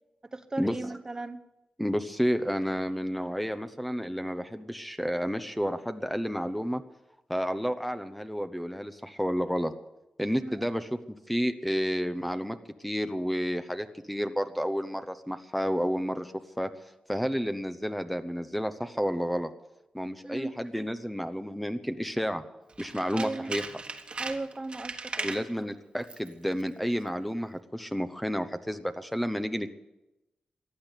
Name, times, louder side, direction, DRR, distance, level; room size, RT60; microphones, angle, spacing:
voice 1, 0.3-1.4 10.4-10.6 20.2-20.5 23.1-23.5 24.2-25.3 25.6-25.8, right 2 dB, 25° right, 10 dB, 1.0 m, -36 dB
voice 2, 1.8-6.8 7.3-9.7 10.2-10.9 11.3-12.6 12.8-16.3 16.6-16.7 17.1-19.5 19.9-22.4 22.8-23.6 25.2-29.7, equal, 5° left, 9 dB, 1.0 m, -30 dB
Tools, 22.7-25.5 26.0-26.3 26.6-26.7, right 3 dB, 45° right, 1.5 m, -38 dB
15.0 x 10.5 x 8.3 m, 0.95 s
cardioid pair, 80°, 2 cm